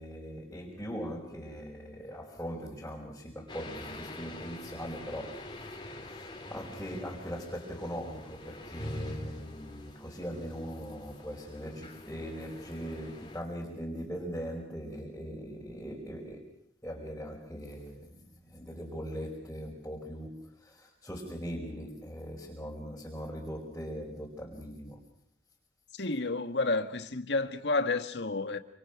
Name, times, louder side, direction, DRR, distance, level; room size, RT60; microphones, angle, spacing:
voice 1, 0.0-16.5 16.8-25.0, equal, 10° left, 5.1 m, -40 dB
sound 1, 3.5-13.4, left 1 dB, 25° left, 3.5 m, -45 dB
voice 2, 25.9-28.6, left 3 dB, 65° left, 1.8 m, -30 dB
28.5 x 27.0 x 6.1 m
head